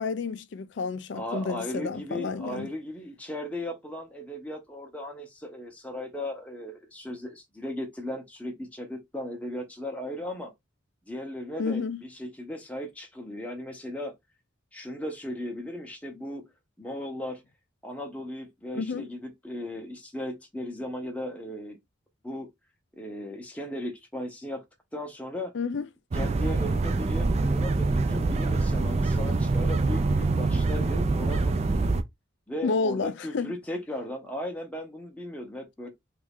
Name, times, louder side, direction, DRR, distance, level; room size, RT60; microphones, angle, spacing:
voice 1, 0.0-2.7 11.6-12.0 18.7-19.0 25.5-25.9 32.6-33.5, left 4 dB, 60° left, 0.4 m, -30 dB
voice 2, 1.1-10.5 11.1-14.1 14.7-16.5 16.8-17.4 17.8-21.8 22.2-22.5 23.0-24.6 24.9-25.5 26.1-31.9 32.5-35.9, left 1 dB, 5° left, 0.6 m, -37 dB
sound 1, 26.1-32.0, right 3 dB, 30° right, 0.3 m, -25 dB
3.1 x 2.4 x 3.4 m
head